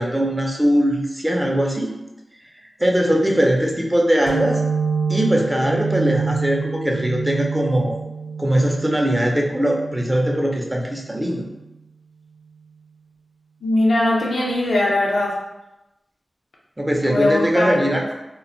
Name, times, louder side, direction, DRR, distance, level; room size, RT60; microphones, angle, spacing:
voice 1, 0.0-1.9 2.8-4.6 5.1-8.0 8.4-11.5 16.8-18.1, equal, 15° right, 0 dB, 0.5 m, -20 dB
sound 1, 4.3-11.6, right 5 dB, 80° right, 0.5 m, -27 dB
voice 2, 13.6-15.4 17.0-17.8, left 1 dB, 90° left, -4 dB, 0.6 m, -20 dB
2.2 x 2.1 x 3.7 m, 0.95 s
wide cardioid pair, 65°, 0 cm